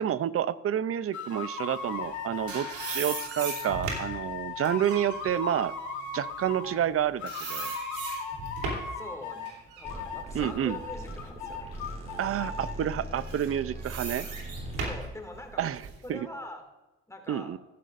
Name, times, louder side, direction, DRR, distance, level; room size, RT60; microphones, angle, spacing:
voice 1, 0.0-5.7 6.1-7.7 10.3-10.8 12.2-14.3 15.6-15.8 16.1-16.3 17.3-17.6, right 10 dB, 50° right, 16 dB, 0.6 m, -29 dB
sound 1, 1.1-6.8 7.2-9.5 9.8-12.7, left 5 dB, 70° left, 1.8 m, -37 dB
sound 2, 2.0-6.9 7.3-9.0 9.4-11.4 11.9-12.0 13.0-16.1, right 3 dB, 85° right, 3.3 m, -38 dB
voice 2, 8.9-11.6 14.7-15.7 16.0-16.6 17.1-17.6, left 1 dB, 10° left, 4 dB, 2.3 m, -43 dB
sound 3, 9.8-15.1, right 1 dB, 20° right, 3.7 m, -40 dB
14.5 x 11.0 x 2.6 m, 1.1 s
cardioid pair, 90°, 30 cm